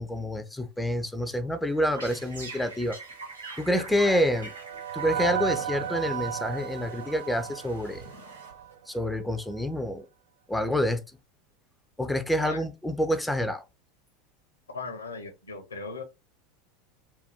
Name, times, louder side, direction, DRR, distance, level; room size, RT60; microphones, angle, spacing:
voice 1, 0.0-3.0 3.6-4.5 4.9-8.0 8.9-10.1 10.5-11.0 12.0-13.6, equal, 5° left, 0.4 m, -27 dB
sound 1, 1.6-8.9, right 3 dB, 80° right, 1.1 m, -44 dB
sound 2, 3.4-8.8, right 10 dB, 65° right, 0.4 m, -34 dB
voice 2, 14.7-16.0, left 4 dB, 80° left, 0.6 m, -38 dB
2.6 x 2.3 x 3.5 m
figure-of-eight pair, 80°, 0 cm